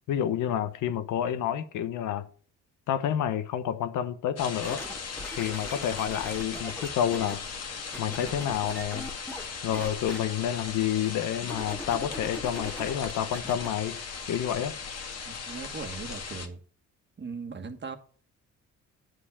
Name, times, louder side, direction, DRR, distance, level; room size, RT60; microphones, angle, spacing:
voice 1, 0.1-2.3 2.9-4.9 5.3-7.4 8.0-9.1 9.6-14.0 14.3-14.8, left 10 dB, 80° left, 0.9 m, -29 dB
sound 1, 4.4-16.5, left 5 dB, 55° left, 1.9 m, -38 dB
sound 2, 4.6-7.3 7.9-9.5 9.7-10.2 11.4-13.7 14.3-14.4, left 1 dB, 5° left, 1.8 m, -40 dB
voice 2, 15.2-16.6 17.2-18.0, right 4 dB, 35° right, 1.5 m, -39 dB
8.9 x 4.8 x 7.1 m
cardioid pair, 90°, 30 cm